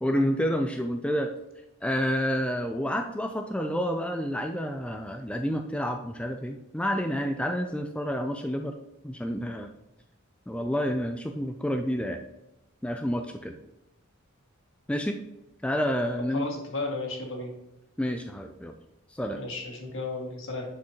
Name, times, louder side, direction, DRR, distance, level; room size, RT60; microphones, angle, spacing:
voice 1, 0.0-1.3 1.8-8.7 9.0-9.7 10.5-12.2 12.8-13.6 14.9-15.2 15.6-16.5 18.0-18.7 19.1-19.4, equal, 5° left, 5 dB, 0.4 m, -29 dB
voice 2, 16.3-17.5 19.3-20.7, left 3 dB, 65° left, 1 dB, 1.9 m, -34 dB
10.5 x 5.2 x 2.9 m, 0.93 s
head